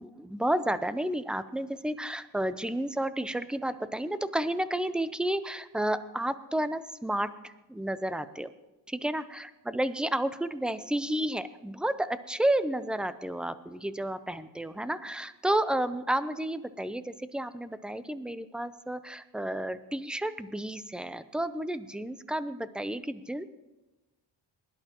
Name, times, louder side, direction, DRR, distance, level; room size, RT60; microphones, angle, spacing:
voice 1, 0.0-8.5 8.9-23.5, right 1 dB, ahead, 12 dB, 0.6 m, -31 dB
21.5 x 11.5 x 3.0 m, 1.1 s
cardioid pair, 95°, 44 cm